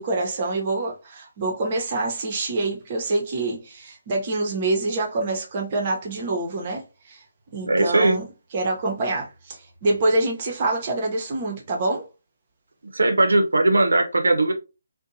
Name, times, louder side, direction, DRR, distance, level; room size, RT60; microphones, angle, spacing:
voice 1, 0.0-7.2 7.5-8.2 8.5-12.1, right 2 dB, 35° right, 0.7 m, -26 dB
voice 2, 7.6-8.2 12.9-14.5, right 2 dB, 75° right, 0.6 m, -19 dB
2.6 x 2.1 x 2.6 m
figure-of-eight pair, 150°, 0 cm